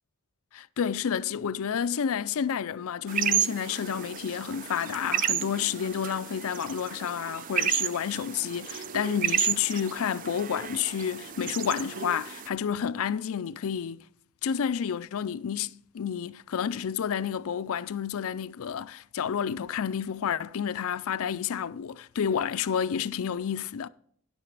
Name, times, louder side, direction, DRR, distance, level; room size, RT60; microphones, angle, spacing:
voice 1, 0.5-14.0 14.4-23.9, left 8 dB, 70° left, 0.4 m, -30 dB
sound 1, 3.1-12.5, right 9 dB, 40° right, 0.4 m, -32 dB
Brass instrument, 8.1-12.3, right 1 dB, 75° right, 2.7 m, -53 dB
9.8 x 7.9 x 4.8 m
head